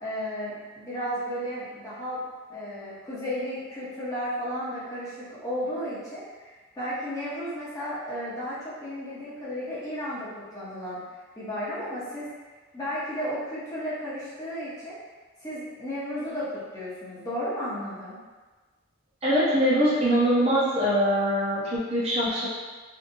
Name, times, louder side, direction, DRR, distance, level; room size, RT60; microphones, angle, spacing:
voice 1, 0.0-2.2 2.5-11.0 11.4-12.3 12.7-15.0 15.4-18.2, equal, 15° left, -10 dB, 0.8 m, -33 dB
voice 2, 19.2-22.5, equal, 30° right, -8 dB, 0.6 m, -23 dB
2.7 x 2.6 x 2.6 m, 1.4 s
head